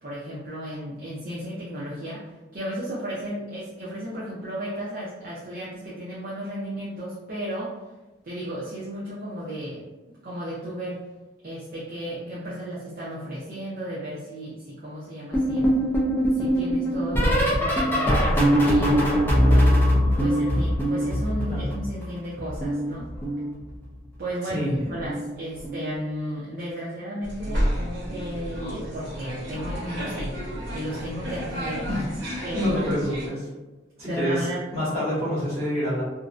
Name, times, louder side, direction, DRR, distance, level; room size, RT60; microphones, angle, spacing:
voice 1, 0.0-2.3 2.5-7.7 8.2-9.8 10.2-11.0 11.4-15.7 16.3-19.8 20.2-23.1 24.2-30.4 30.7-31.9 32.4-33.0 34.1-34.7, equal, 45° right, -8 dB, 0.5 m, -34 dB
sound 1, 15.3-22.1 22.4-24.0 25.0-25.3 25.6-25.9 27.5-27.7 28.1-28.3 29.9-30.0, equal, 10° left, 0.3 m, -22 dB
sound 2, 27.2-33.3, equal, 75° right, 0.8 m, -31 dB
voice 2, 31.9-33.5 34.0-34.5 34.7-36.0, equal, 30° right, -11 dB, 1.3 m, -27 dB
2.5 x 2.0 x 2.4 m, 1.1 s
head